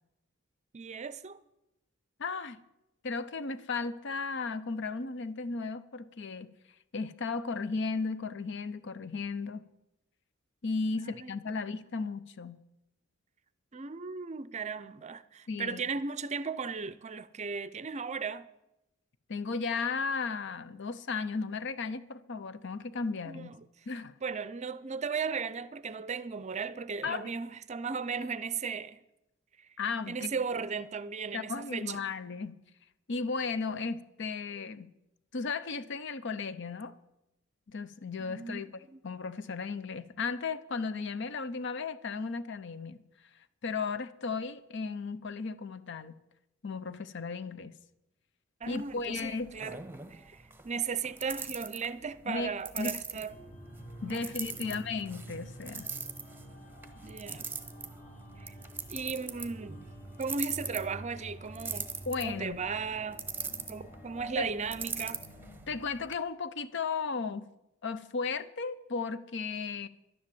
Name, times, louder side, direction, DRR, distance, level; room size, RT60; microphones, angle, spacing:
voice 1, 0.7-1.4 10.9-11.3 13.7-18.5 23.3-23.7 24.2-29.0 29.6-29.7 30.1-32.0 38.2-39.0 48.6-49.8 50.1-53.4 54.0-54.3 54.6-54.7 57.0-57.5 58.4-58.5 58.9-59.9 60.2-61.9 62.2-63.2 63.7-65.2, right 5 dB, 35° right, 0.5 m, -36 dB
voice 2, 2.2-2.6 3.0-6.5 6.9-9.6 10.6-12.6 15.5-15.8 19.3-23.5 23.9-24.2 27.0-27.3 29.8-30.3 31.3-32.6 33.1-34.9 35.3-36.9 37.7-38.7 39.0-43.0 43.6-46.2 46.6-47.7 48.7-49.6 52.3-52.5 52.8-53.0 54.0-55.9 62.1-62.6 64.4-64.5 65.7-67.5 67.8-69.9, left 4 dB, 60° left, 0.7 m, -35 dB
sound 1, 48.6-66.2, right 5 dB, 10° right, 1.0 m, -43 dB
sound 2, 53.3-65.6, equal, 35° left, 1.3 m, -49 dB
11.5 x 10.0 x 7.7 m
head